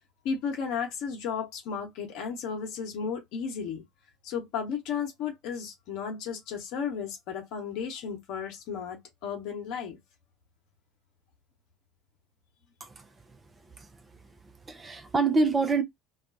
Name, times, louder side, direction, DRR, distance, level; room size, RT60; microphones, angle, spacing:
voice 1, 0.2-3.8 4.2-10.0, left 6 dB, 55° left, 0.9 m, -34 dB
voice 2, 14.7-15.8, right 3 dB, 25° right, 0.5 m, -26 dB
2.4 x 2.2 x 2.5 m
figure-of-eight pair, 65°, 0 cm